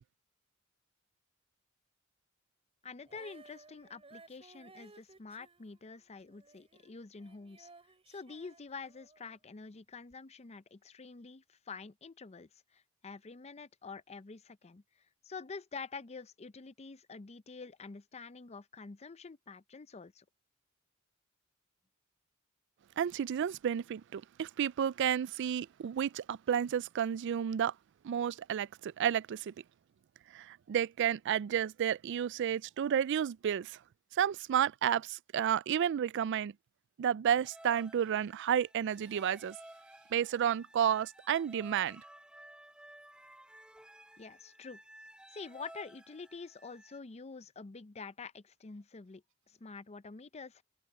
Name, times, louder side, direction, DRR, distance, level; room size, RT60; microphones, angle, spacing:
voice 1, 2.8-7.7 8.1-14.8 15.2-20.2 44.2-44.8 45.3-50.6, left 4 dB, 30° left, 0.5 m, -47 dB
Female singing, 3.0-9.4 10.1-10.2, right 3 dB, 30° right, 3.9 m, -59 dB
voice 2, 23.0-27.7 28.0-29.5 30.3-33.8 34.1-36.5 37.0-39.6 40.1-42.0, right 9 dB, 55° right, 0.3 m, -31 dB
sound 1, 37.4-47.0, right 1 dB, 5° right, 2.6 m, -55 dB
open air
head